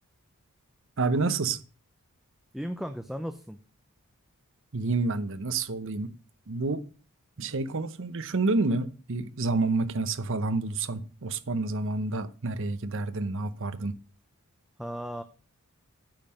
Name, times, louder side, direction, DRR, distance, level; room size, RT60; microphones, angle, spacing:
voice 1, 1.0-1.6 4.7-6.1 6.5-6.8 7.4-13.9, right 3 dB, 60° right, 0.8 m, -29 dB
voice 2, 2.5-3.6 14.8-15.2, equal, ahead, 0.5 m, -35 dB
8.9 x 5.6 x 6.3 m
head